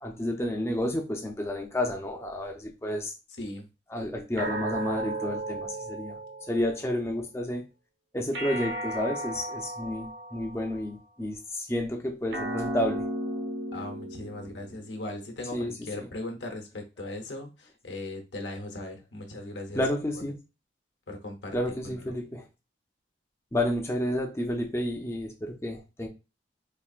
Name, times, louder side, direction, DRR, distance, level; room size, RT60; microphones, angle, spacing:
voice 1, 0.0-3.1 3.9-6.2 6.5-7.7 8.1-13.0 15.5-16.1 19.7-20.4 21.5-22.4 23.5-26.1, left 1 dB, 15° left, 0.6 m, -31 dB
sound 1, 4.4-7.0 8.3-10.9 12.3-14.9, right 1 dB, 85° right, 1.0 m, -35 dB
voice 2, 13.7-19.8 21.1-21.6 21.8-22.1, left 2 dB, 85° left, 0.9 m, -38 dB
4.3 x 2.6 x 2.4 m
head